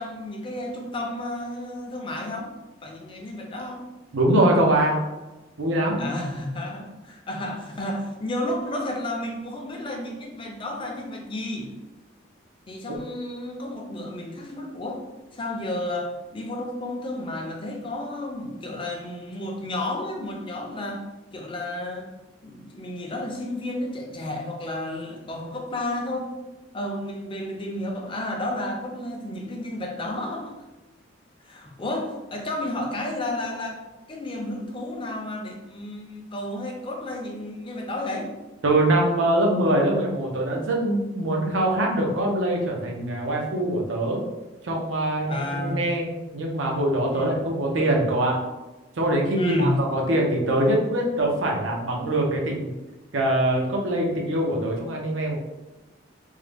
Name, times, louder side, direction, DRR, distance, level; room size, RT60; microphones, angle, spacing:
voice 1, 0.0-2.5 2.8-3.8 6.0-11.7 12.7-15.0 15.3-21.0 21.3-22.1 22.4-26.3 26.7-30.5 31.4-33.8 34.1-38.3 45.3-45.9 47.1-47.5 49.4-49.8, left 1 dB, 25° left, 1 dB, 0.5 m, -31 dB
voice 2, 4.1-5.0 5.6-6.0 38.6-44.2 44.6-46.0 46.3-48.4 49.0-52.7 53.1-55.4, right 1 dB, 90° right, -1 dB, 0.7 m, -23 dB
3.5 x 2.1 x 3.3 m, 1.1 s
head